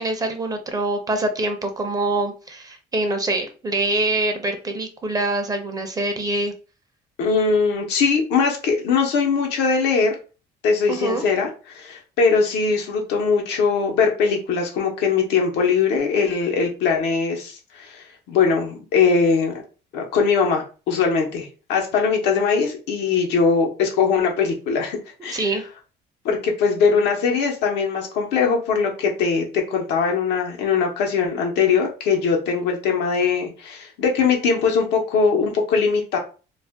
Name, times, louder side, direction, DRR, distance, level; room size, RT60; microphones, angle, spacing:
voice 1, 0.0-6.5 10.9-11.2 25.3-25.6, right 2 dB, 20° right, 5 dB, 0.6 m, -24 dB
voice 2, 7.2-10.2 10.6-19.6 19.9-25.5 26.2-36.2, left 5 dB, 85° left, 2 dB, 0.8 m, -21 dB
2.4 x 2.1 x 3.5 m, 0.35 s
cardioid pair, 110°, 17 cm